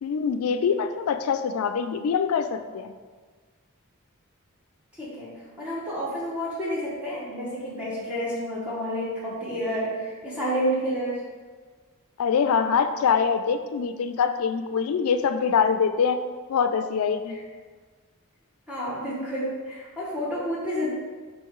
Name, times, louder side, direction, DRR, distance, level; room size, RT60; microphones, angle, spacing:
voice 1, 0.0-2.9 12.2-16.2 16.5-17.3, left 6 dB, 80° left, 9 dB, 0.3 m, -24 dB
voice 2, 5.0-5.3 5.6-11.2 17.3-17.4 18.7-20.9, equal, 5° right, -9 dB, 1.1 m, -30 dB
5.4 x 3.1 x 3.1 m, 1.5 s
head